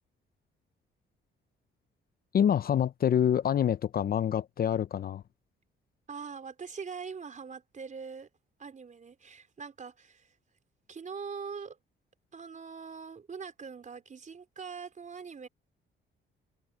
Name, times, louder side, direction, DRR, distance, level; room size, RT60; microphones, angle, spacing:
voice 1, 2.3-5.2, left 9 dB, 50° left, 0.6 m, -26 dB
voice 2, 6.1-8.3 8.6-10.3 10.9-11.8 12.3-15.5, right 5 dB, 40° right, 4.6 m, -42 dB
cardioid pair, 90°, 20 cm